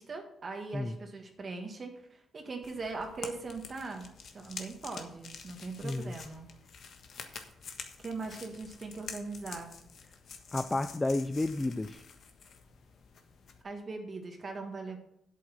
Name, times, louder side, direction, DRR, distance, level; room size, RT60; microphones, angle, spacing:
voice 1, 0.0-4.1 4.3-6.5 7.1-7.5 8.0-9.7 13.6-15.0, right 3 dB, 35° right, 4 dB, 1.5 m, -40 dB
sound 1, 2.6-13.6, left 5 dB, 60° left, 1.4 m, -48 dB
voice 2, 5.8-6.1 10.5-12.0, left 2 dB, 15° left, 10 dB, 0.4 m, -31 dB
8.3 x 7.8 x 5.9 m, 0.76 s
cardioid pair, 110°, 0 cm